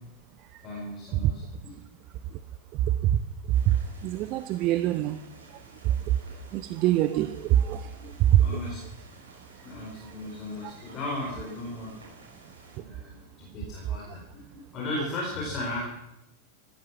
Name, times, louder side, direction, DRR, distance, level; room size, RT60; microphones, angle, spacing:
voice 1, 0.6-1.7 8.0-8.1 8.4-8.8 9.6-11.9 12.8-15.8, left 1 dB, 30° left, -2 dB, 4.5 m, -36 dB
sound 1, 3.5-12.8, right 3 dB, 70° right, 5.7 m, -52 dB
voice 2, 4.0-5.2 6.5-7.8 8.3-8.6, right 13 dB, 40° right, 13 dB, 0.6 m, -24 dB
15.5 x 13.0 x 6.1 m, 0.90 s
figure-of-eight pair, 90°, 0 cm